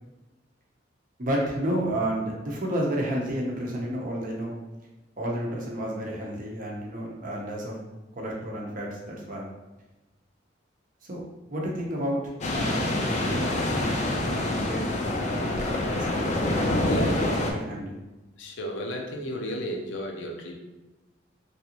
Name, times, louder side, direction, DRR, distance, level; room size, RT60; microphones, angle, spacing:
voice 1, 1.2-4.5 5.2-7.8 8.2-9.5 11.0-11.2 11.5-18.0, right 1 dB, 45° right, -2 dB, 0.7 m, -31 dB
sound 1, 12.4-17.5, left 1 dB, 40° left, 0.4 m, -26 dB
voice 2, 16.8-17.2 18.4-20.5, equal, 85° left, 1 dB, 0.6 m, -33 dB
3.3 x 2.5 x 2.8 m, 1.1 s
head